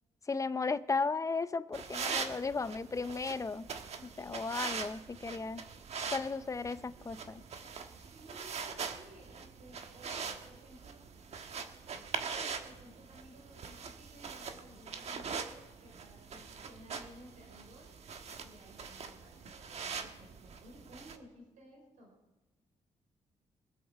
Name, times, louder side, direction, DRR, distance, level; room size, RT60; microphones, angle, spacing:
voice 1, 0.3-3.7 4.0-5.6 6.1-7.4, left 4 dB, 25° left, 14 dB, 0.6 m, -35 dB
sound 1, 1.7-21.2, right 5 dB, 60° right, 1.3 m, -42 dB
voice 2, 8.1-11.1 12.2-17.9 18.4-22.1, right 1 dB, 85° right, 0 dB, 4.9 m, -57 dB
23.0 x 7.9 x 4.8 m, 1.1 s
cardioid pair, 95°, 13 cm